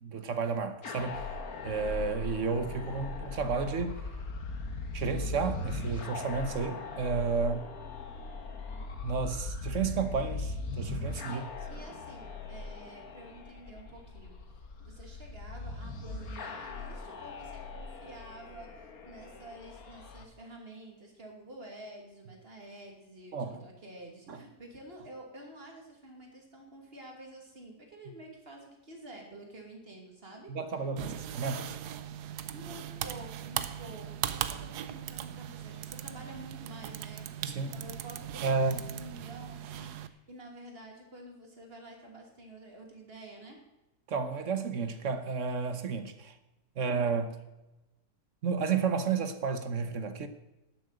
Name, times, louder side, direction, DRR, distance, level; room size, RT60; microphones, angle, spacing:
voice 1, 0.0-1.3 1.6-4.0 4.9-7.7 9.0-11.4 23.3-23.6 24.3-24.4 30.5-31.8 37.4-37.7 38.4-38.8 44.1-46.3 46.8-47.4 48.4-50.3, right 5 dB, 55° right, 1.3 m, -32 dB
sound 1, 0.8-20.2, left 3 dB, 65° left, 1.8 m, -39 dB
voice 2, 11.2-14.4 14.8-30.5 31.0-31.2 32.2-43.6, right 1 dB, 40° right, 2.9 m, -49 dB
sound 2, 31.0-40.1, right 10 dB, 85° right, 1.3 m, -39 dB
12.0 x 7.8 x 7.8 m
omnidirectional pair, 1.7 m